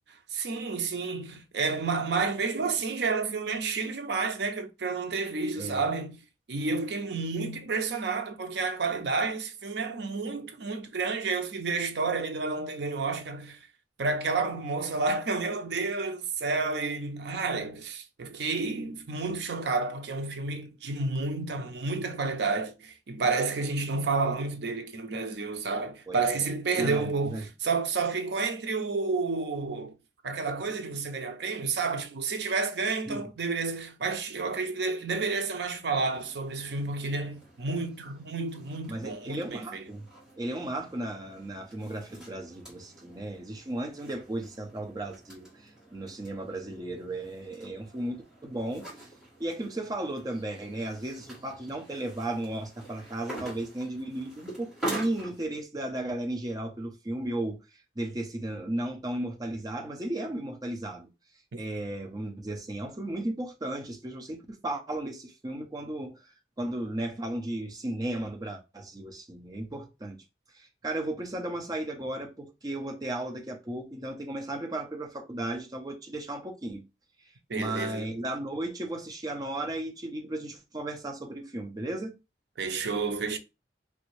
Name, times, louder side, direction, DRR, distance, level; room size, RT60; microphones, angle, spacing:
voice 1, 0.3-6.2 6.5-13.6 14.0-30.0 30.2-39.9 77.5-78.1 82.6-83.4, right 4 dB, 70° right, 0.5 m, -30 dB
voice 2, 26.8-27.5 33.1-33.3 38.9-40.1 40.4-45.5 45.9-48.9 49.4-57.6 58.0-61.1 61.6-66.2 66.6-70.2 70.6-76.8 77.5-82.1, right 1 dB, 20° right, 0.6 m, -35 dB
sound 1, 36.0-55.5, right 1 dB, 5° right, 1.6 m, -45 dB
3.3 x 2.6 x 3.1 m
head